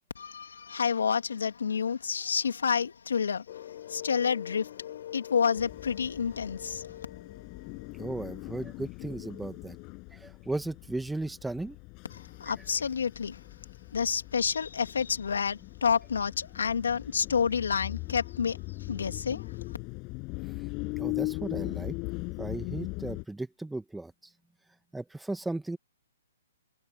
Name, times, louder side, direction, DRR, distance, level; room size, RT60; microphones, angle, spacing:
voice 1, 0.1-3.4 3.9-4.7 5.1-6.9 12.1-13.4 13.9-18.6 18.9-19.5, left 6 dB, 80° left, 3.2 m, -29 dB
sound 1, 3.5-8.5, left 12 dB, 55° left, 7.7 m, -44 dB
sound 2, 5.6-23.2, left 28 dB, 30° left, 7.5 m, -40 dB
voice 2, 8.0-9.8 10.1-11.8 20.5-22.0 22.4-24.3 24.9-25.8, right 2 dB, 5° right, 1.9 m, -36 dB
hypercardioid pair, 140°, 0 cm